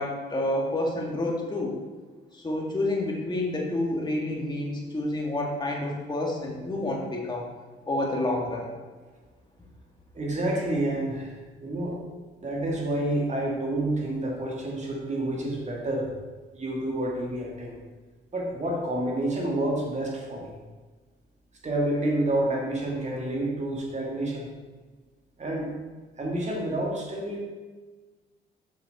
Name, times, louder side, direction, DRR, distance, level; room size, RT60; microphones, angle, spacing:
voice 1, 0.0-1.8 2.3-7.5 7.9-8.7, left 1 dB, 20° left, -1 dB, 1.9 m, -29 dB
voice 2, 10.1-12.0 12.4-16.1 16.5-17.8 18.3-20.5 21.6-24.5 25.4-25.7 26.2-27.4, right 1 dB, 35° right, -1 dB, 2.1 m, -29 dB
7.1 x 6.1 x 4.2 m, 1.3 s
cardioid pair, 90°, 20 cm